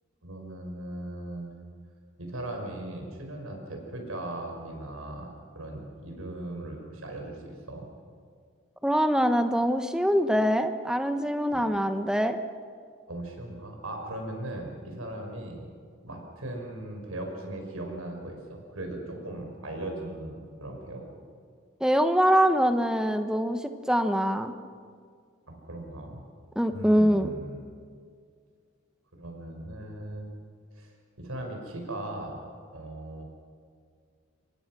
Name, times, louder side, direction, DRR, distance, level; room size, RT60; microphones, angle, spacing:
voice 1, 0.2-1.5 2.2-7.9 11.5-11.6 13.1-15.6 16.0-21.0 25.5-26.2 26.7-27.6 29.1-30.4 30.8-30.9 31.2-32.4 32.7-33.2, right 1 dB, 85° right, 3 dB, 5.3 m, -38 dB
voice 2, 8.8-12.4 21.8-24.5 26.6-27.3, equal, 5° right, 8 dB, 1.0 m, -24 dB
26.0 x 22.5 x 6.1 m, 2.1 s
head